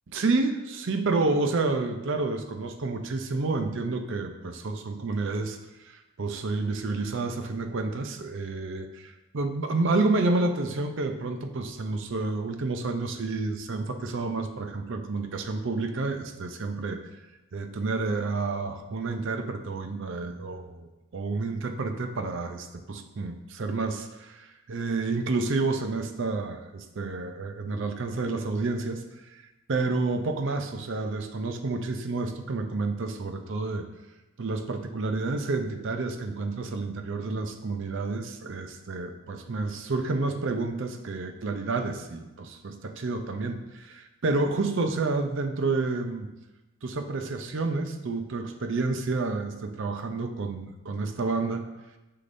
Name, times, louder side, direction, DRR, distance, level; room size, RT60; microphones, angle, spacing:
voice 1, 0.1-5.6 5.9-17.0 17.5-29.0 29.3-29.4 29.7-33.8 34.4-46.3 46.8-51.7, right 3 dB, 60° right, 6 dB, 0.5 m, -29 dB
6.5 x 5.7 x 2.6 m, 1.0 s
head